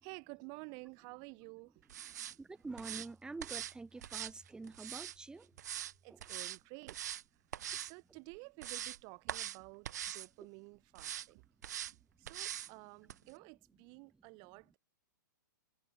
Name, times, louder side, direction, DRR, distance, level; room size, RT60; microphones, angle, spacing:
voice 1, 0.0-1.8 6.0-7.0 7.3-7.4 7.8-9.9 10.1-11.5 12.2-14.8, right 36 dB, 35° right, 6.7 m, -52 dB
sound 1, 1.9-2.3 2.8-3.1 3.4-3.7 4.0-5.2 5.6-5.9 6.2-6.6 6.9-7.2 7.5-7.9 8.3-9.0 9.3-9.6 9.8-10.3 10.9-11.3 11.6-11.9 12.3-12.7 13.1-13.2, right 11 dB, 55° right, 0.7 m, -42 dB
voice 2, 2.2-5.5 6.1-6.2 7.7-7.8 12.2-12.3, right 3 dB, 5° right, 2.7 m, -47 dB
open air
figure-of-eight pair, 110°, 11 cm